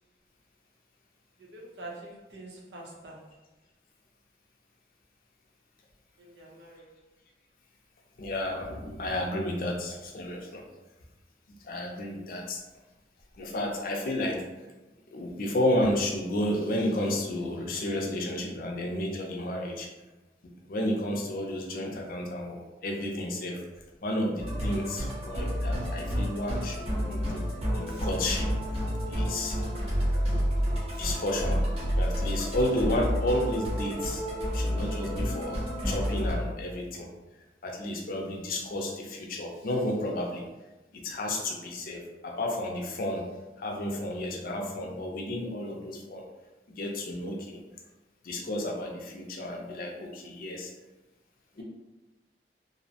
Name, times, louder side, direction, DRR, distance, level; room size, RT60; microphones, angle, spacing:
voice 1, 1.4-3.3 6.2-6.9, right 2 dB, 85° right, -2 dB, 0.6 m, -45 dB
voice 2, 8.2-10.6 11.6-12.6 13.3-14.4 15.1-19.9 20.7-23.6 24.0-28.5 29.1-29.6 31.0-31.6 32.0-34.2 34.5-35.6 35.8-37.1 37.6-40.5 40.9-43.2 43.6-46.2 46.7-47.6 48.2-50.7 51.6-51.7, left 1 dB, 55° left, 0 dB, 0.5 m, -31 dB
Musical instrument, 24.4-36.3, equal, 35° right, 0.7 m, -30 dB
2.6 x 2.0 x 2.7 m, 1.1 s
head